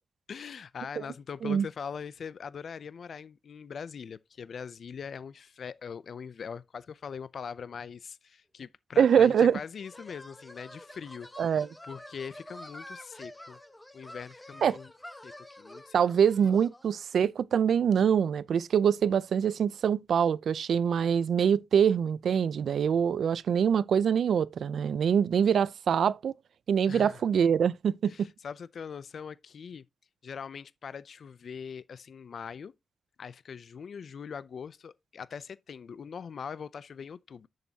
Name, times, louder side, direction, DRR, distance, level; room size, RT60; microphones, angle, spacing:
voice 1, 0.3-11.6 11.9-13.6 13.9-14.9 15.2-15.3 15.6-15.9 26.9-27.2 28.1-29.8 30.2-32.7 33.2-37.5, left 6 dB, 50° left, 0.5 m, -42 dB
sound 1, 8.9-17.0, left 1 dB, 10° left, 1.2 m, -48 dB
voice 2, 9.0-9.6 11.4-11.7 14.6-14.8 15.9-26.3 26.7-28.3, right 7 dB, 65° right, 0.5 m, -24 dB
10.0 x 6.5 x 2.8 m
wide cardioid pair, 160°, 0 cm